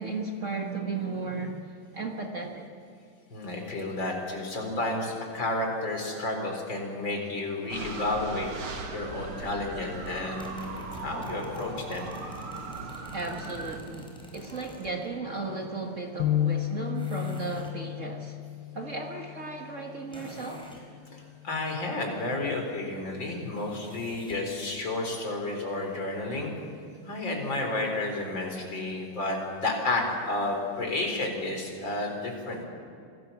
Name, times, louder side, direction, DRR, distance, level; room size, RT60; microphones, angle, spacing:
voice 1, 0.0-2.7 13.1-18.4 18.7-20.7, right 3 dB, 40° right, 2 dB, 1.9 m, -35 dB
voice 2, 3.3-8.5 8.9-12.1 21.1-26.5 27.1-32.6, left 2 dB, 60° left, 2 dB, 4.9 m, -31 dB
sound 1, 7.7-13.8, right 3 dB, 85° right, 3.0 m, -39 dB
sound 2, 10.1-15.1 17.0-17.8 20.1-20.9 23.6-24.5, left 1 dB, ahead, 4.4 m, -47 dB
sound 3, 16.2-22.4, left 12 dB, 85° left, 2.1 m, -34 dB
26.5 x 18.5 x 7.2 m, 2.5 s
omnidirectional pair, 2.3 m